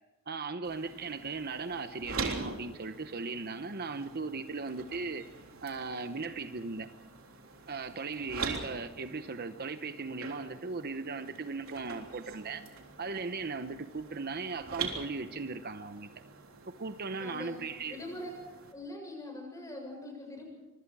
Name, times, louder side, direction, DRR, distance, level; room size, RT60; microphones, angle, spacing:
voice 1, 0.3-5.2 5.6-6.9 7.7-12.6 13.0-16.1 16.7-18.0, right 4 dB, 50° right, 9 dB, 0.9 m, -38 dB
sound 1, 0.6-18.7, right 4 dB, 90° right, 3.6 m, -44 dB
voice 2, 17.2-17.6 17.9-18.3 18.7-20.5, left 1 dB, 15° left, 1 dB, 7.2 m, -42 dB
25.5 x 24.5 x 4.9 m, 1.1 s
head